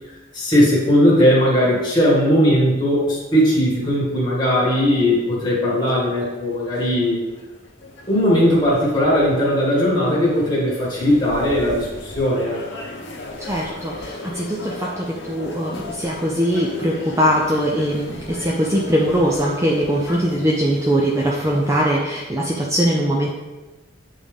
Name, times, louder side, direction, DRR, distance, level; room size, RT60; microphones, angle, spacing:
voice 1, 0.3-7.2 8.1-12.6, equal, 20° left, -6 dB, 2.0 m, -18 dB
sound 1, 3.8-21.8, left 2 dB, 60° left, 1.1 m, -37 dB
voice 2, 13.4-23.3, equal, 15° right, -3 dB, 0.5 m, -21 dB
8.5 x 3.7 x 3.5 m, 1.2 s
head